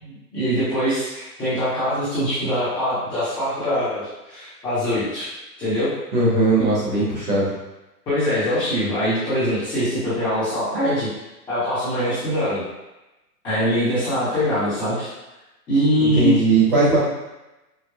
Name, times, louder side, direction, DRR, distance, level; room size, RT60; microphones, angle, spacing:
voice 1, 0.0-5.3 5.6-5.9 6.6-6.7 8.1-11.1 11.5-12.6 13.4-15.1 15.7-16.3, equal, 10° left, -16 dB, 0.7 m, -23 dB
voice 2, 6.1-7.5 16.0-17.0, right 2 dB, 30° right, -7 dB, 1.0 m, -19 dB
4.8 x 2.1 x 2.2 m, 0.99 s
hypercardioid pair, 150°, 48 cm